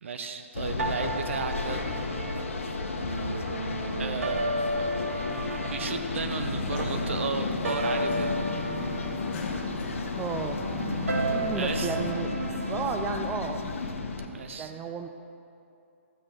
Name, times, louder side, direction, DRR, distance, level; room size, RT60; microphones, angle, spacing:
voice 1, 0.0-1.8 4.0-5.2 5.6-8.3 11.5-11.9 14.3-14.7, right 5 dB, 65° right, 7 dB, 0.9 m, -34 dB
sound 1, 0.5-14.3, left 4 dB, 75° left, 1.0 m, -33 dB
sound 2, 0.8-13.0, right 1 dB, 90° right, 1.0 m, -33 dB
sound 3, 6.6-12.1, left 1 dB, 25° left, 1.4 m, -39 dB
voice 2, 10.1-10.6 11.3-12.3 12.6-13.6 14.6-15.1, right 6 dB, 15° right, 5 dB, 0.4 m, -33 dB
13.0 x 8.8 x 3.7 m, 2.7 s
hypercardioid pair, 135°, 7 cm